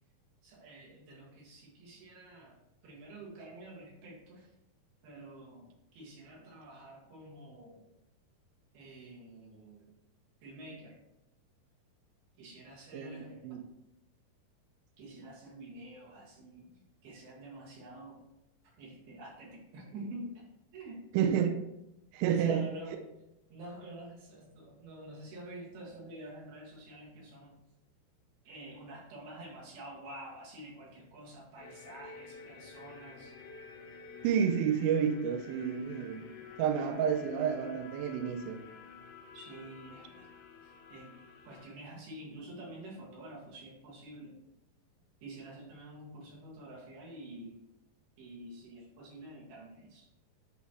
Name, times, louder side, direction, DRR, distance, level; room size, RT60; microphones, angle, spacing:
voice 1, 0.4-2.6 2.8-4.5 5.0-7.9 8.7-9.9 10.4-11.0 12.4-13.5 15.0-18.2 18.8-20.5 20.7-21.0 22.3-23.0 23.5-27.6 28.5-33.4 39.3-40.3 40.6-41.1 41.5-44.4 45.2-47.6 48.2-50.2, right 1 dB, 65° right, -4 dB, 3.8 m, -48 dB
voice 2, 21.1-21.6 22.1-22.7 34.2-36.3 36.6-38.6, right 8 dB, 85° right, 6 dB, 2.2 m, -30 dB
sound 1, 31.6-41.7, left 5 dB, 75° left, 2.5 m, -51 dB
10.5 x 4.1 x 3.1 m, 0.86 s
omnidirectional pair, 4.8 m